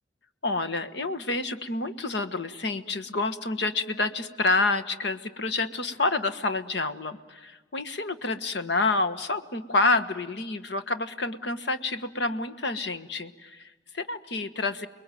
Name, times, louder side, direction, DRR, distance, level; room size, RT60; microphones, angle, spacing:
voice 1, 0.4-14.9, left 3 dB, 65° left, 11 dB, 1.4 m, -28 dB
29.5 x 21.5 x 9.2 m, 1.3 s
head